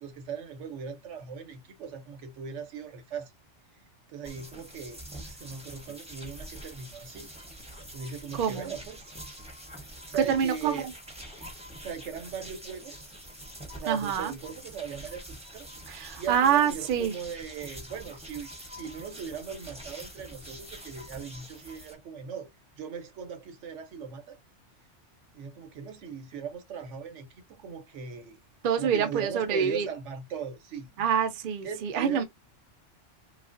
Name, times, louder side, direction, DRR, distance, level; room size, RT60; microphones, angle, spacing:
voice 1, 0.0-3.3 4.1-7.3 7.9-9.2 10.1-10.9 11.8-13.1 13.8-15.7 16.2-22.5 22.7-24.4 25.3-28.4 28.8-30.9 31.6-32.2, right 7 dB, 75° right, 1.0 m, -39 dB
sound 1, 4.2-21.9, right 1 dB, 5° right, 0.6 m, -45 dB
voice 2, 8.3-8.7 10.3-10.9 13.9-14.3 15.9-17.1 28.6-29.9 31.0-32.2, right 8 dB, 55° right, 0.6 m, -26 dB
3.1 x 2.4 x 2.4 m
omnidirectional pair, 1.2 m